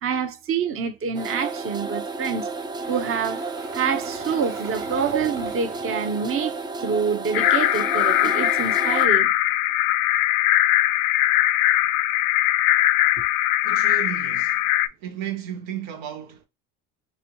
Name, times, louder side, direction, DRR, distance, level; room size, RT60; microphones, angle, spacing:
voice 1, 0.0-2.5 2.9-3.4 3.7-6.5 6.8-9.3, right 6 dB, 35° right, 0.7 m, -26 dB
sound 1, 1.1-9.1, right 3 dB, 10° right, 0.3 m, -32 dB
Engine, 2.5-7.8, right 5 dB, 50° right, 1.2 m, -42 dB
sound 2, 7.3-14.9, left 14 dB, 65° left, 0.5 m, -20 dB
voice 2, 13.6-14.6 15.0-16.5, right 9 dB, 80° right, 0.8 m, -33 dB
3.3 x 2.6 x 2.9 m
supercardioid pair, 80°, 39 cm